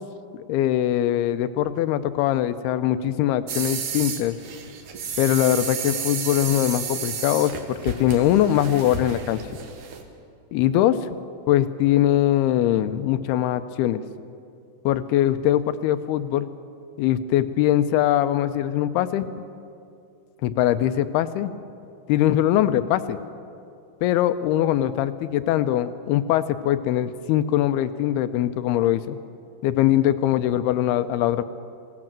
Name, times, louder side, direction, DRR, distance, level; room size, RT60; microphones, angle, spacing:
voice 1, 0.5-4.4 5.2-9.4 10.5-11.1 11.5-14.0 14.9-16.5 17.0-19.4 20.4-21.5 22.1-23.2 24.0-29.2 29.6-31.4, left 12 dB, 80° left, 11 dB, 2.4 m, -22 dB
sound 1, 3.5-10.0, right 6 dB, 60° right, 2.4 m, -32 dB
21.5 x 17.0 x 7.5 m, 2.5 s
omnidirectional pair, 5.0 m